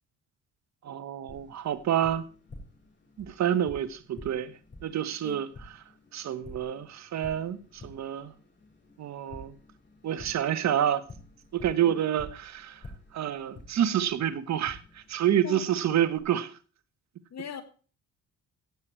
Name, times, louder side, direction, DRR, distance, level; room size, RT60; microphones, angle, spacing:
voice 1, 0.8-2.2 3.2-4.5 4.8-5.5 6.1-8.3 9.0-9.5 10.0-11.1 11.5-12.8 13.1-16.5, right 10 dB, 65° right, 1.4 m, -28 dB
Tap, 1.3-16.2, left 2 dB, 40° left, 6.0 m, -50 dB
voice 2, 17.3-17.6, left 8 dB, 60° left, 2.2 m, -39 dB
16.5 x 8.0 x 4.6 m
cardioid pair, 90°, 30 cm